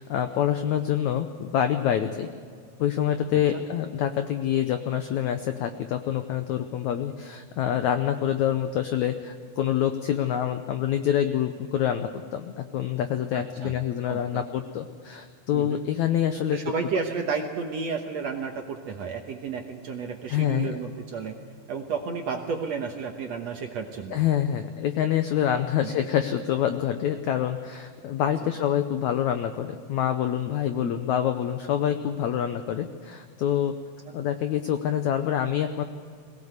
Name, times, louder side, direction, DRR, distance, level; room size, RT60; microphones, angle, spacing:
voice 1, 0.0-2.3 2.8-16.6 20.3-20.8 24.1-33.7 34.1-35.8, left 10 dB, 80° left, 8 dB, 1.7 m, -26 dB
voice 2, 13.3-13.7 14.1-14.4 15.5-15.8 16.5-21.4 21.7-24.2 25.8-25.9 28.4-28.5 30.8-31.1, right 5 dB, 65° right, 3 dB, 1.8 m, -32 dB
22.0 x 17.5 x 8.1 m, 2.1 s
omnidirectional pair, 4.4 m